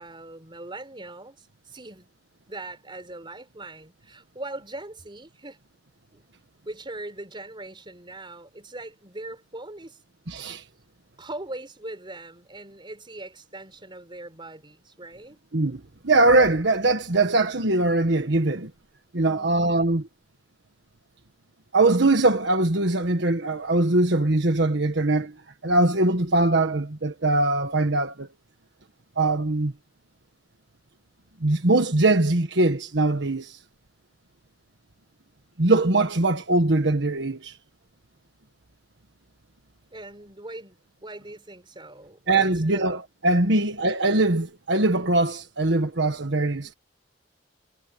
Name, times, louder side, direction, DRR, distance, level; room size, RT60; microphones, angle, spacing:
voice 1, 0.0-2.1 2.5-5.6 6.1-6.2 6.6-10.0 11.2-15.4 19.2-19.7 39.9-43.0 43.4-43.7, right 2 dB, 25° right, 4.5 m, -41 dB
voice 2, 10.3-10.6 15.5-18.7 19.1-20.1 21.7-25.3 25.6-28.3 29.2-29.7 31.4-33.6 35.6-37.6 42.3-46.7, right 2 dB, 70° right, 1.5 m, -22 dB
head